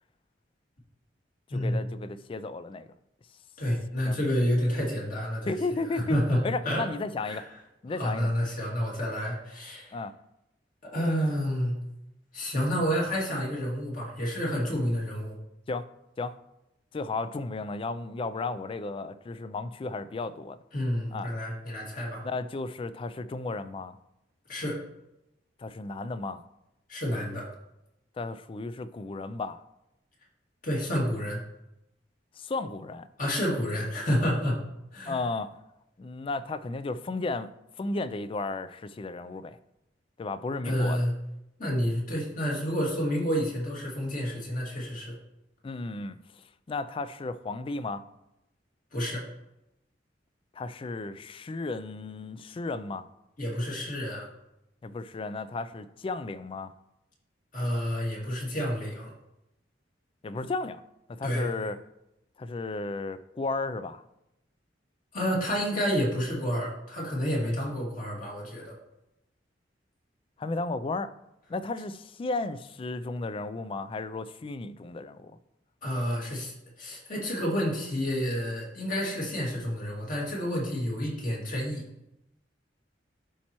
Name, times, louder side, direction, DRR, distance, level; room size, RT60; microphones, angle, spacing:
voice 1, 1.5-2.9 4.0-4.2 5.5-7.4 7.8-8.3 9.9-10.1 15.7-15.9 16.2-16.4 16.9-20.6 21.1-21.3 22.2-24.0 25.6-26.4 28.2-29.6 32.4-33.1 35.1-35.5 36.0-37.5 37.8-39.6 40.2-41.0 45.6-48.0 50.5-53.1 54.8-56.7 60.2-60.8 61.1-61.8 62.4-64.0 70.4-71.1 71.5-75.4, left 3 dB, 30° left, 0.3 m, -34 dB
voice 2, 3.6-5.5 5.9-6.4 6.7-6.8 7.2-7.4 8.0-10.0 10.8-11.8 12.3-15.4 20.7-22.3 24.5-24.8 26.9-27.5 30.6-31.4 33.2-34.6 34.9-35.2 40.6-41.1 41.6-45.1 48.9-49.2 53.4-54.3 57.5-59.1 61.2-61.5 65.1-68.8 75.8-81.8, equal, 45° left, 2.2 m, -29 dB
11.5 x 4.3 x 3.0 m
head